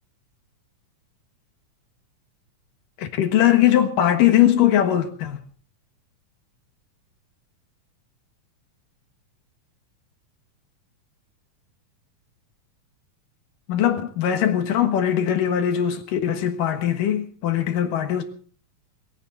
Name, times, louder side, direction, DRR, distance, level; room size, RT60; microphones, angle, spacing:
voice 1, 3.0-5.4 13.7-18.2, left 11 dB, 85° left, 3.1 m, -20 dB
21.5 x 16.5 x 4.0 m
omnidirectional pair, 3.7 m